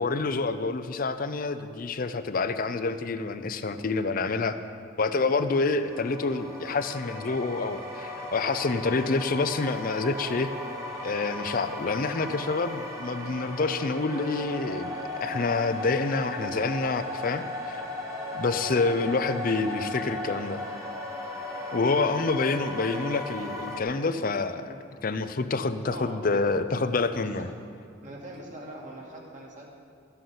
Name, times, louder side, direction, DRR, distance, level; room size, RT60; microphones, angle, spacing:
voice 1, 0.0-4.6 5.0-10.5 11.0-17.8 18.3-20.6 21.7-24.7 25.0-27.5, left 3 dB, 45° left, 11 dB, 0.5 m, -27 dB
sound 1, 5.6-23.8, left 1 dB, 15° right, 1.6 m, -36 dB
voice 2, 25.9-26.4 27.2-27.5 28.0-29.7, right 1 dB, 40° right, -2 dB, 2.1 m, -43 dB
13.5 x 7.8 x 5.8 m, 2.3 s
head